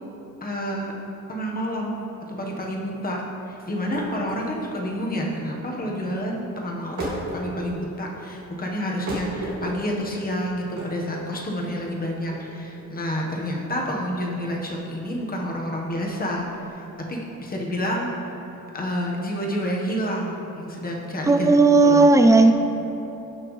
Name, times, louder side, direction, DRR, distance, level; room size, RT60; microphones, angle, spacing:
voice 1, 0.4-0.9 1.3-3.2 3.5-16.8 17.1-18.1 18.7-22.2, equal, 30° left, -1 dB, 1.2 m, -29 dB
sound 1, 3.9-16.7, right 1 dB, 60° right, 2.3 m, -37 dB
voice 2, 21.3-22.5, right 3 dB, 10° right, 6 dB, 0.4 m, -14 dB
17.0 x 5.9 x 3.2 m, 3.0 s
wide cardioid pair, 175°, 31 cm